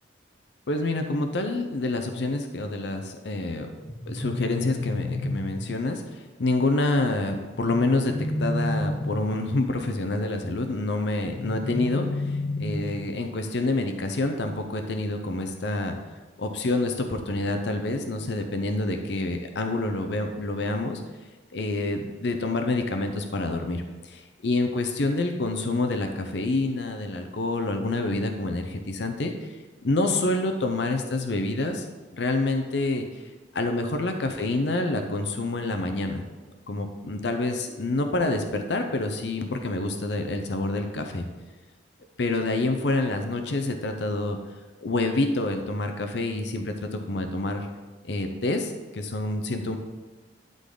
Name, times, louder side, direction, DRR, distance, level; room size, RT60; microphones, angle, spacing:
voice 1, 0.7-3.7 4.1-16.0 16.4-21.0 21.5-29.5 29.8-31.8 32.1-33.1 33.5-36.2 36.7-41.2 42.2-44.4 44.8-47.7 48.0-49.8, left 2 dB, 65° left, 5 dB, 0.6 m, -27 dB
sound 1, 3.8-5.8 7.5-9.5 11.2-13.2, left 1 dB, 25° left, 0.8 m, -30 dB
11.5 x 3.9 x 3.8 m, 1.3 s
head